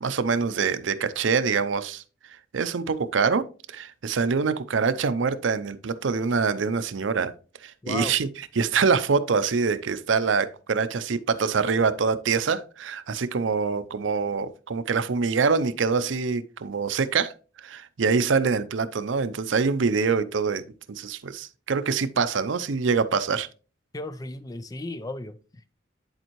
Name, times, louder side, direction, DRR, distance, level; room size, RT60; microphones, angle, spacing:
voice 1, 0.0-2.0 2.5-7.3 7.6-8.3 8.6-17.3 17.6-23.5, right 5 dB, 80° right, 0.5 m, -25 dB
voice 2, 7.8-8.2 23.9-25.7, left 2 dB, 20° left, 0.4 m, -35 dB
10.5 x 4.4 x 3.0 m
head